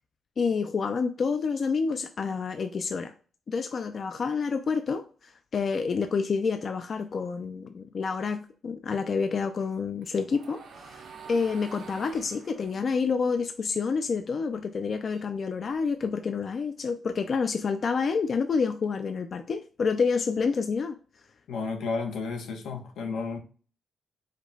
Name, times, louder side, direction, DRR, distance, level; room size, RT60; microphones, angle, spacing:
voice 1, 0.4-3.1 3.5-21.0, left 5 dB, 40° left, 0.3 m, -28 dB
sound 1, 9.6-14.1 14.5-16.0, right 6 dB, 55° right, 0.7 m, -48 dB
voice 2, 21.5-23.4, left 4 dB, 85° left, 1.0 m, -32 dB
5.0 x 2.2 x 3.9 m
wide cardioid pair, 155°, 0 cm